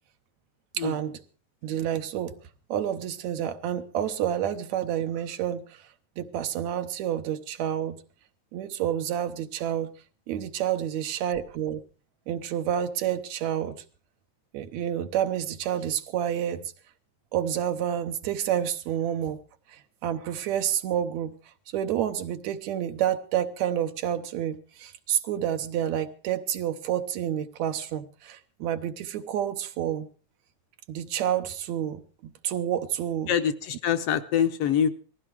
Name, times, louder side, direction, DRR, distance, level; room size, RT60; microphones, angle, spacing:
voice 1, 0.7-1.2 1.6-2.3 2.7-5.8 6.2-8.0 8.5-9.9 10.3-11.8 12.3-13.8 14.5-16.7 17.3-19.4 19.7-21.3 21.7-30.1 30.9-33.3, right 10 dB, 75° right, 8 dB, 2.3 m, -29 dB
voice 2, 33.3-34.9, left 8 dB, 65° left, 10 dB, 1.7 m, -24 dB
19.5 x 14.5 x 4.8 m, 0.38 s
omnidirectional pair, 3.3 m